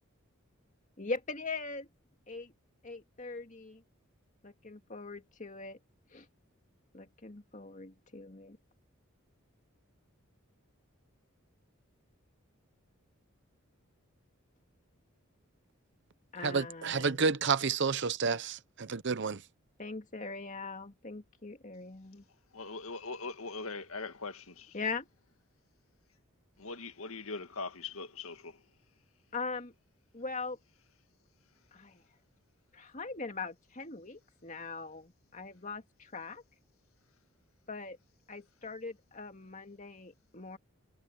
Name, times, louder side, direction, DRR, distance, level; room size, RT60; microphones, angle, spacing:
voice 1, 1.0-1.9 2.3-2.5 2.8-3.8 4.4-5.8 6.1-6.3 6.9-8.6 16.3-17.3 19.8-22.2 24.7-25.1 29.3-29.7 30.1-30.6 31.7-32.0 32.7-36.4 37.7-38.0 38.3-40.6, left 4 dB, 35° left, 2.2 m, -41 dB
voice 2, 16.4-19.4, right 5 dB, 55° right, 0.8 m, -30 dB
voice 3, 22.5-24.8 26.6-28.6, left 3 dB, 80° left, 1.9 m, -41 dB
head